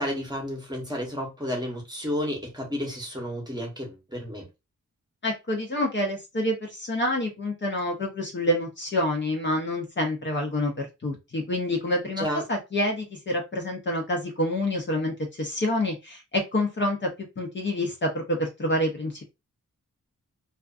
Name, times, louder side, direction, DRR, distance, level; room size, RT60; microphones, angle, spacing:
voice 1, 0.0-4.5 12.2-12.4, equal, 15° right, 0.8 m, -31 dB
voice 2, 5.2-10.7 11.0-17.1 17.4-19.2, left 1 dB, 35° left, 0.6 m, -27 dB
2.4 x 2.4 x 2.3 m
wide cardioid pair, 150°, 31 cm